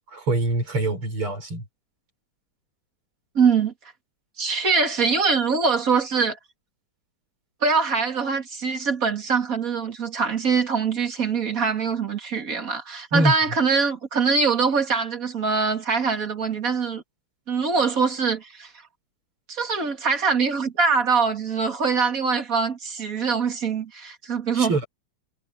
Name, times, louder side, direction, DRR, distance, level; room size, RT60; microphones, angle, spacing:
voice 1, 0.1-1.6 13.1-13.3 24.5-24.9, right 1 dB, 80° right, 6.7 m, -24 dB
voice 2, 3.3-3.7 4.4-6.4 7.6-17.0 17.5-18.7 19.5-24.7, right 5 dB, 40° right, 2.7 m, -23 dB
omnidirectional pair, 2.3 m